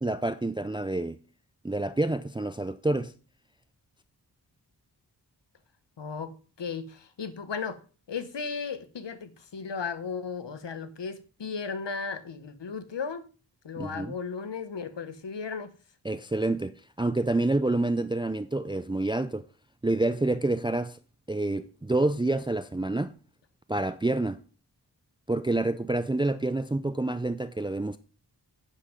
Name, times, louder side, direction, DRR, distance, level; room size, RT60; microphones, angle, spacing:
voice 1, 0.0-1.2 1.6-3.1 13.8-14.1 16.0-16.7 17.0-19.4 19.8-21.0 21.3-23.1 23.7-24.4 25.3-28.0, right 2 dB, 10° right, 0.4 m, -28 dB
voice 2, 6.0-7.8 8.1-13.2 13.6-15.7, left 5 dB, 80° left, 1.2 m, -35 dB
8.7 x 7.5 x 5.2 m
wide cardioid pair, 95°, 42 cm